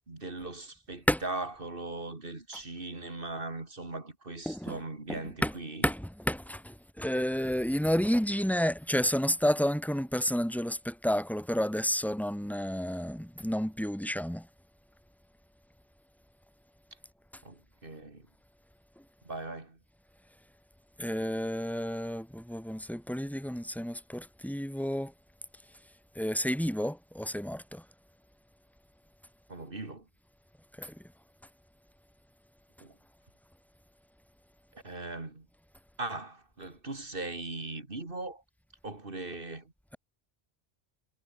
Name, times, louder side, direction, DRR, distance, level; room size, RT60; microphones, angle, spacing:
voice 1, 0.0-5.8 17.4-18.3 19.2-19.8 29.5-30.1 32.8-33.0 34.8-35.5 36.0-38.4 38.8-39.7, right 2 dB, 55° right, 3.3 m, -39 dB
voice 2, 4.5-4.8 5.1-5.5 5.8-14.5 19.0-19.1 21.0-25.1 26.1-27.9 30.7-31.1, equal, ahead, 5.8 m, -31 dB
omnidirectional pair, 1.1 m